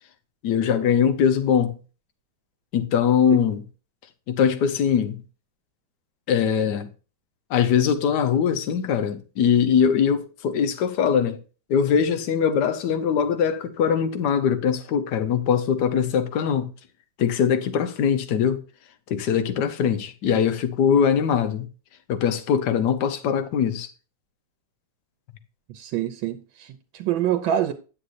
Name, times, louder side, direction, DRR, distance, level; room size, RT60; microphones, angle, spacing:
voice 1, 0.4-1.8 2.7-3.6 4.3-5.2 6.3-6.9 7.5-11.4 11.7-16.7 17.2-18.6 19.1-21.7 22.1-23.9, left 7 dB, 65° left, 1.4 m, -22 dB
voice 2, 25.7-27.7, right 11 dB, 85° right, 1.4 m, -26 dB
10.0 x 8.0 x 2.5 m
omnidirectional pair, 2.1 m